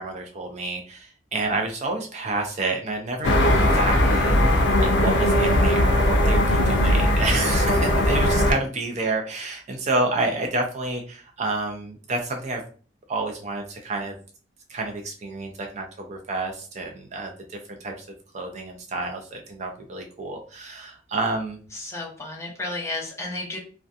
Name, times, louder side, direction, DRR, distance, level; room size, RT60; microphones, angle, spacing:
voice 1, 0.0-12.6 13.1-14.1 14.7-18.1 18.3-21.6, right 2 dB, 40° right, 3 dB, 0.4 m, -29 dB
sound 1, 3.2-8.5, left 1 dB, 75° left, 0.4 m, -19 dB
voice 2, 21.7-23.6, left 2 dB, 15° left, -2 dB, 0.6 m, -32 dB
2.6 x 2.2 x 2.4 m, 0.40 s
head